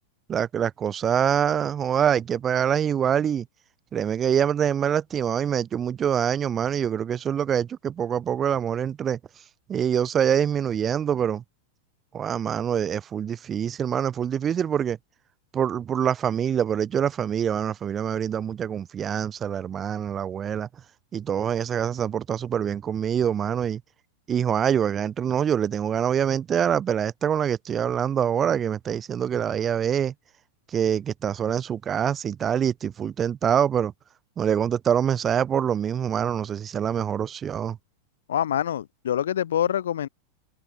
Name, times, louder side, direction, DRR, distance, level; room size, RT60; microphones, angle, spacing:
voice 1, 0.3-3.4 3.9-9.2 9.7-11.4 12.1-15.0 15.5-20.7 21.1-23.8 24.3-30.1 30.7-33.9 34.4-37.8, right 8 dB, 25° right, 1.5 m, -25 dB
voice 2, 38.3-40.1, left 10 dB, 60° left, 0.5 m, -25 dB
figure-of-eight pair, 90°, 0 cm